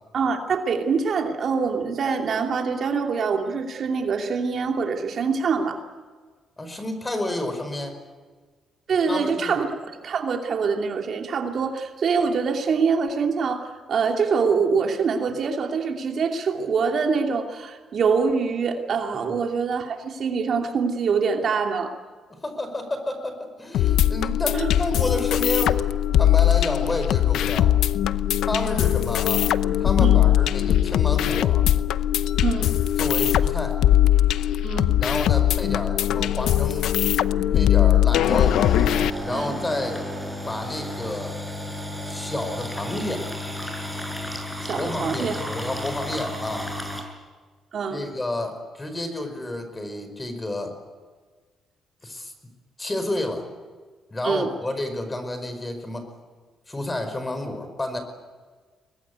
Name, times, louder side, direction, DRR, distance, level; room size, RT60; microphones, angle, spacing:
voice 1, 0.1-5.8 8.9-9.7 10.0-21.9 24.5-24.7 30.0-30.2 32.4-32.7 34.6-35.0 39.3-39.6 44.6-45.4 47.7-48.0 54.2-54.5, right 5 dB, 55° right, 3 dB, 2.8 m, -24 dB
voice 2, 6.6-8.0 9.1-9.6 19.1-19.3 22.3-25.9 26.1-27.7 28.4-29.5 29.8-31.7 33.0-33.8 35.0-36.9 37.5-38.6 39.2-40.0 40.5-41.4 42.0-43.3 44.7-46.7 47.9-50.7 52.0-52.3 52.8-53.5 54.1-56.1 56.7-58.0, left 1 dB, 20° left, 8 dB, 5.1 m, -30 dB
sound 1, 23.7-39.1, left 12 dB, 80° left, 0.7 m, -20 dB
sound 2, 38.3-47.0, left 1 dB, 5° left, 7.1 m, -33 dB
24.0 x 20.5 x 9.5 m, 1.5 s
cardioid pair, 90°, 0 cm